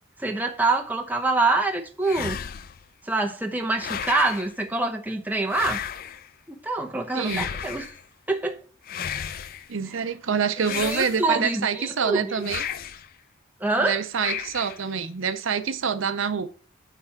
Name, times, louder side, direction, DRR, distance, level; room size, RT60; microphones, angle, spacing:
voice 1, 0.2-2.4 3.1-5.8 6.5-7.9 8.3-8.6 10.7-12.4 13.6-14.0, right 3 dB, 10° right, 0.7 m, -25 dB
sound 1, 2.0-2.8 3.7-4.5 5.5-6.3 7.2-8.0 8.8-9.7 10.6-11.5 12.4-13.1 14.2-14.9, left 8 dB, 45° left, 0.4 m, -33 dB
voice 2, 7.1-7.5 9.7-12.6 13.8-16.5, right 6 dB, 65° right, 0.6 m, -26 dB
9.2 x 3.3 x 5.7 m
head